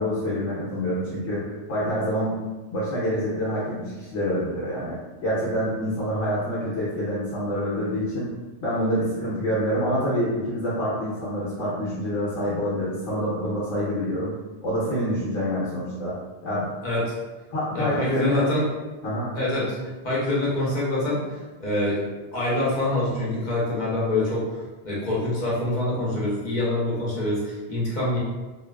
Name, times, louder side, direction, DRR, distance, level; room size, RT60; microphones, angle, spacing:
voice 1, 0.0-2.4 2.7-5.0 5.2-8.3 8.6-14.3 14.6-16.2 16.4-16.7 17.5-18.4 19.0-19.3, equal, 70° left, -9 dB, 1.0 m, -26 dB
voice 2, 17.7-18.6 19.3-19.8 20.0-21.2 21.6-22.0 22.3-24.4 24.8-28.2, left 1 dB, 45° left, -7 dB, 0.8 m, -25 dB
2.5 x 2.3 x 2.2 m, 1.2 s
omnidirectional pair, 1.2 m